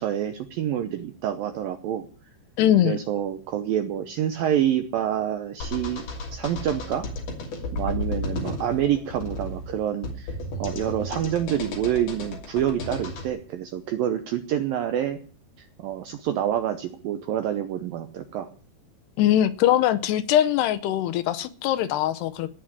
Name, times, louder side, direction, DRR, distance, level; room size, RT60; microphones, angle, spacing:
voice 1, 0.0-2.1 2.8-6.0 6.3-7.1 7.7-15.2 15.6-18.5, right 10 dB, 75° right, 8 dB, 2.1 m, -27 dB
voice 2, 2.6-3.0 19.2-22.5, left 11 dB, 75° left, 12 dB, 2.7 m, -22 dB
sound 1, 5.6-13.3, left 2 dB, 50° left, 3.9 m, -33 dB
18.0 x 6.0 x 9.8 m, 0.43 s
omnidirectional pair, 5.1 m